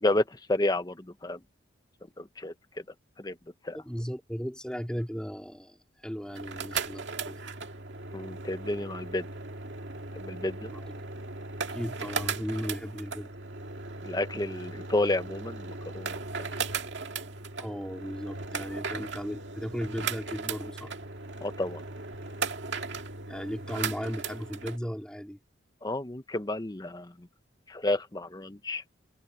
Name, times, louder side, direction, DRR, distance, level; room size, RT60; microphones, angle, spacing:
voice 1, 0.0-1.4 2.2-2.5 3.2-3.4 3.6-3.8 8.1-9.3 10.1-10.7 14.0-16.2 21.4-21.8 25.8-27.3 27.7-28.8, left 2 dB, 20° left, 0.8 m, -31 dB
voice 2, 3.7-7.4 10.7-10.9 11.7-13.3 17.6-20.9 23.3-25.4, equal, 5° left, 3.7 m, -36 dB
sound 1, 6.2-24.8, right 4 dB, 65° right, 2.1 m, -37 dB
head